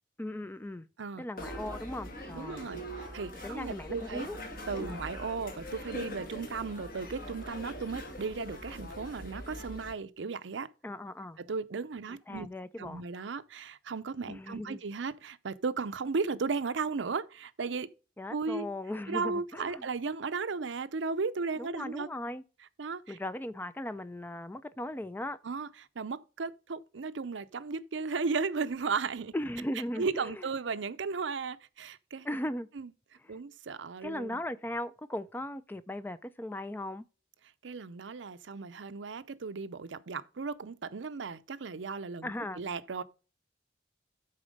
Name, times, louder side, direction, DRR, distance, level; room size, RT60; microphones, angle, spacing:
voice 1, 0.2-0.9 1.2-2.7 3.4-4.4 4.8-5.0 10.8-11.4 12.3-13.0 14.3-14.8 18.2-19.9 21.6-22.4 23.1-25.4 29.3-30.4 32.2-32.7 34.0-37.0 42.2-42.6, left 1 dB, 10° left, 0.3 m, -38 dB
sound 1, 1.4-9.9, equal, 50° left, 1.7 m, -42 dB
voice 2, 2.3-4.3 4.7-10.7 11.4-12.5 12.8-17.9 18.3-18.7 19.1-22.1 22.8-23.2 25.4-29.3 30.0-32.3 32.7-32.9 33.3-34.4 37.6-43.0, right 4 dB, 80° right, 0.6 m, -35 dB
9.9 x 4.3 x 5.1 m
head